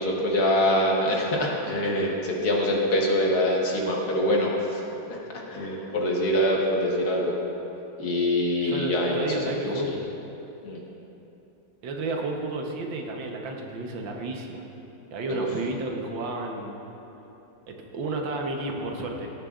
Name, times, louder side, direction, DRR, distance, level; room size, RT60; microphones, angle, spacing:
voice 1, 0.0-7.4 8.0-10.0 10.6-10.8 15.3-15.5, left 1 dB, 55° left, -2 dB, 1.7 m, -25 dB
voice 2, 8.6-10.0 11.8-14.6 15.1-16.8 17.7-19.3, right 2 dB, 80° right, 1 dB, 1.7 m, -32 dB
16.0 x 11.0 x 2.4 m, 3.0 s
omnidirectional pair, 2.1 m